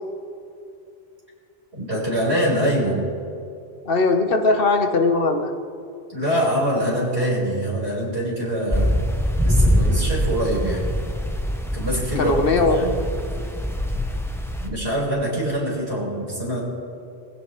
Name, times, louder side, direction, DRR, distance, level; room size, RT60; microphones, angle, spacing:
voice 1, 1.7-3.0 6.1-9.0 9.4-10.8 11.7-12.9 14.6-16.6, right 1 dB, 90° right, -5 dB, 5.0 m, -24 dB
voice 2, 3.8-5.5 12.2-12.8, left 3 dB, 60° left, 5 dB, 1.3 m, -19 dB
sound 1, 8.7-14.7, equal, 5° left, 0.8 m, -23 dB
21.5 x 16.0 x 3.2 m, 2.5 s
omnidirectional pair, 1.1 m